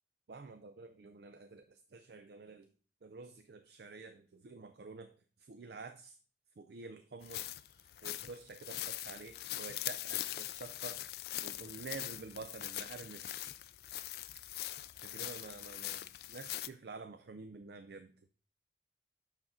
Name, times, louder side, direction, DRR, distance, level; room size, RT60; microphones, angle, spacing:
voice 1, 0.3-2.7 3.0-6.2 6.6-11.1 11.4-13.5 15.0-18.1, right 4 dB, 65° right, 8 dB, 0.5 m, -49 dB
sound 1, 7.2-16.7, left 14 dB, 60° left, 0.3 m, -42 dB
6.5 x 5.9 x 3.7 m, 0.38 s
head